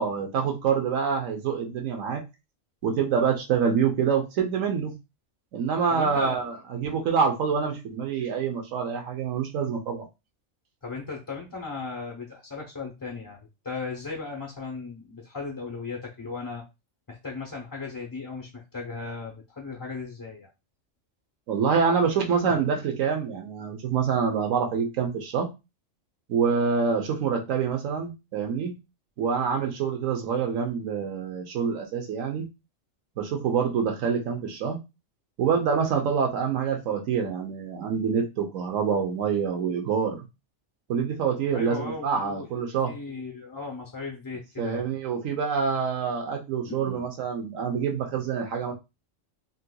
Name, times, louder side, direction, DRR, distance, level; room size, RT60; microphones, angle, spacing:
voice 1, 0.0-2.2 2.8-4.9 5.5-10.1 21.5-25.5 26.3-28.7 29.2-32.5 33.2-34.8 35.4-40.2 40.9-42.9 44.6-48.7, right 6 dB, 90° right, 2 dB, 1.2 m, -26 dB
voice 2, 5.9-6.5 10.8-16.7 17.1-20.5 41.5-42.5 42.9-44.9 46.7-47.1, left 4 dB, 30° left, -1 dB, 0.4 m, -37 dB
3.7 x 2.8 x 2.2 m, 0.25 s
omnidirectional pair, 1.3 m